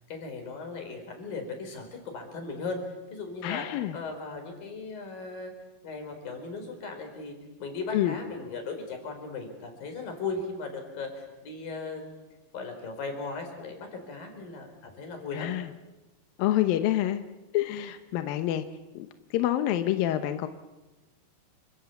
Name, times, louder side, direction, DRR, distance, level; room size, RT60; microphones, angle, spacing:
voice 1, 0.1-2.8 3.1-5.5 5.8-12.2 12.5-15.5, left 3 dB, 50° left, 5 dB, 6.3 m, -37 dB
voice 2, 3.4-3.9 7.9-8.1 15.3-15.7 16.4-17.2 17.5-18.6 19.0-19.1 19.3-20.5, left 13 dB, 70° left, 8 dB, 2.3 m, -27 dB
29.5 x 26.0 x 7.1 m, 1.1 s
omnidirectional pair, 5.1 m